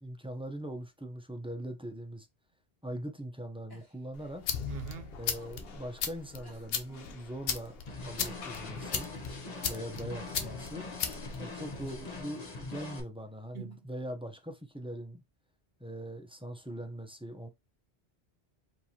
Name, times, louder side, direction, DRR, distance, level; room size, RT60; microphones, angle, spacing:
voice 1, 0.0-2.3 2.8-4.4 5.2-9.1 9.6-10.9 11.4-15.2 15.8-17.5, right 1 dB, 5° right, 0.6 m, -41 dB
sound 1, 3.7-4.1 5.2-5.7 6.4-6.7 7.9-8.1 8.5-9.3 10.0-10.1 10.7-11.3 11.9-12.0 13.7-13.8, left 1 dB, 20° left, 1.8 m, -58 dB
sound 2, 4.1-12.2, left 7 dB, 65° left, 0.9 m, -38 dB
voice 2, 4.7-5.1 13.5-13.9, right 9 dB, 70° right, 0.9 m, -42 dB
sound 3, 7.9-13.0, left 3 dB, 40° left, 1.1 m, -43 dB
4.5 x 3.3 x 2.8 m
omnidirectional pair, 1.1 m